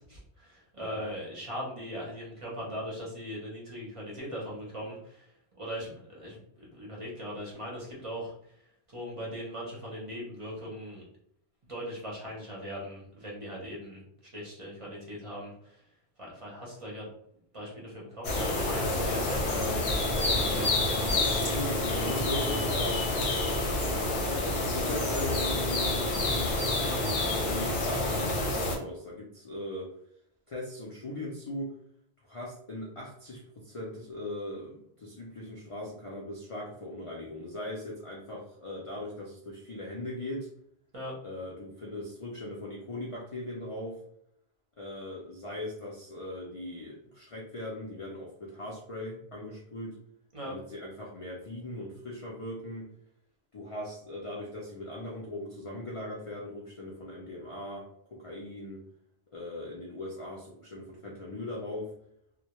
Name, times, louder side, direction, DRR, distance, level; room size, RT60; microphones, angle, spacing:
voice 1, 0.0-11.0 11.7-14.0 14.3-15.8 16.2-17.1 17.5-20.9 26.8-27.0 40.9-41.1 50.3-50.6, equal, 40° right, -4 dB, 0.7 m, -40 dB
sound 1, 18.2-28.8, left 2 dB, 75° left, 0.9 m, -28 dB
voice 2, 21.1-23.0 23.9-26.5 27.4-29.9 30.5-31.8 32.2-40.5 41.2-44.0 44.8-50.0 50.4-52.9 53.5-58.9 59.3-61.9, left 1 dB, 50° left, -4 dB, 0.4 m, -39 dB
2.1 x 2.1 x 2.9 m, 0.71 s
omnidirectional pair, 1.1 m